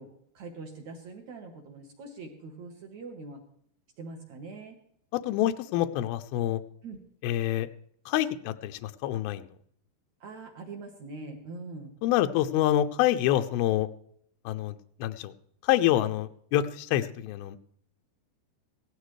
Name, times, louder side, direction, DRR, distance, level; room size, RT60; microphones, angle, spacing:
voice 1, 0.0-3.4 4.0-4.8 6.8-7.0 10.2-11.9, right 3 dB, 65° right, 3 dB, 1.9 m, -43 dB
voice 2, 5.1-6.6 7.2-7.7 8.1-9.5 12.0-13.9 14.5-15.3 15.6-17.6, left 13 dB, 90° left, 8 dB, 2.1 m, -27 dB
17.0 x 13.0 x 3.2 m, 0.66 s
omnidirectional pair, 5.0 m